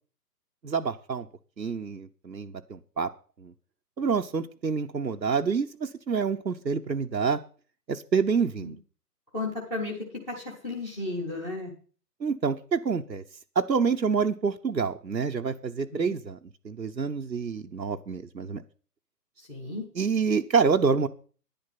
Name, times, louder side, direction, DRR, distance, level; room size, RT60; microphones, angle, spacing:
voice 1, 0.6-1.3 1.6-3.1 3.4-3.5 4.0-7.4 7.9-8.8 12.2-13.2 13.6-16.4 16.6-18.6 19.9-21.1, right 5 dB, 90° right, 4 dB, 1.0 m, -27 dB
voice 2, 9.3-10.0 10.3-11.7 15.9-16.1 19.5-19.8, left 2 dB, 5° left, -6 dB, 0.7 m, -33 dB
10.5 x 10.5 x 5.8 m, 0.40 s
figure-of-eight pair, 135°, 49 cm